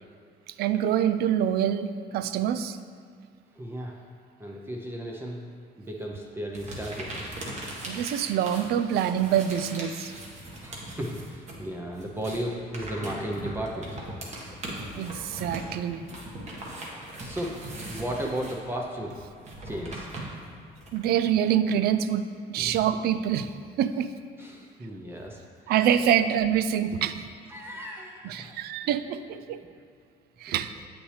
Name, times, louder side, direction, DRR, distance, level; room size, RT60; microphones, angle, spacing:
voice 1, 0.5-2.8 7.8-10.1 15.0-16.1 20.9-23.5 23.8-24.1 25.7-27.2 28.2-29.6 30.4-30.7, right 9 dB, 70° right, 12 dB, 0.4 m, -26 dB
voice 2, 3.6-4.0 4.4-5.5 5.8-7.1 10.6-14.0 17.2-19.2 19.6-20.1 22.6-22.7 24.4-25.4 27.5-28.5, right 1 dB, 15° right, -1 dB, 0.6 m, -35 dB
sound 1, 6.5-11.6 11.9-21.0, right 1 dB, 45° right, 1.4 m, -39 dB
8.2 x 6.0 x 3.2 m, 2.1 s
cardioid pair, 110°, 17 cm